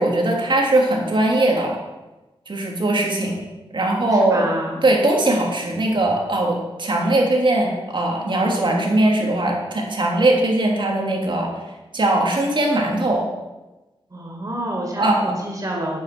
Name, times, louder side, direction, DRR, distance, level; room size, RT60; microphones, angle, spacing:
voice 1, 0.0-1.8 2.5-3.4 3.7-4.5 4.8-11.5 11.9-13.3 15.0-15.3, right 1 dB, 55° right, -1 dB, 3.2 m, -20 dB
voice 2, 4.1-4.8 14.1-16.0, right 1 dB, 35° right, -2 dB, 4.5 m, -28 dB
9.6 x 9.6 x 6.2 m, 1.1 s
wide cardioid pair, 75°, 10 cm